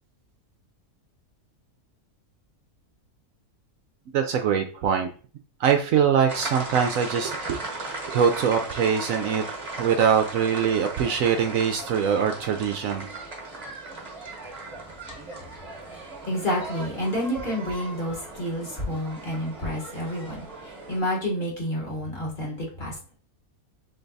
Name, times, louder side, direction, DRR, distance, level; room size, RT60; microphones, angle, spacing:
voice 1, 4.1-5.1 5.6-9.4 9.8-13.1, right 7 dB, 70° right, 5 dB, 0.9 m, -23 dB
sound 1, 6.3-21.0, right 2 dB, 30° right, 1.1 m, -37 dB
voice 2, 16.2-23.0, equal, 35° left, -2 dB, 1.5 m, -29 dB
3.9 x 3.4 x 3.9 m, 0.40 s
omnidirectional pair, 1.6 m